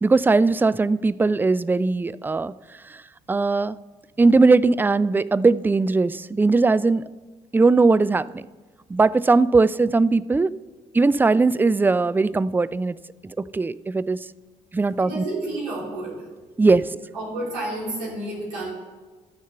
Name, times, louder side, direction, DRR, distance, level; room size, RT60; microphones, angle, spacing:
voice 1, 0.0-2.5 3.3-3.8 4.2-7.0 7.5-8.4 8.9-10.6 10.9-13.0 13.5-14.2 14.7-15.2 16.6-16.9, right 3 dB, 10° right, 0.3 m, -19 dB
voice 2, 15.0-16.3 16.7-16.8 17.1-18.7, right 2 dB, 85° right, 3.5 m, -30 dB
13.5 x 6.4 x 6.9 m
figure-of-eight pair, 45°, 21 cm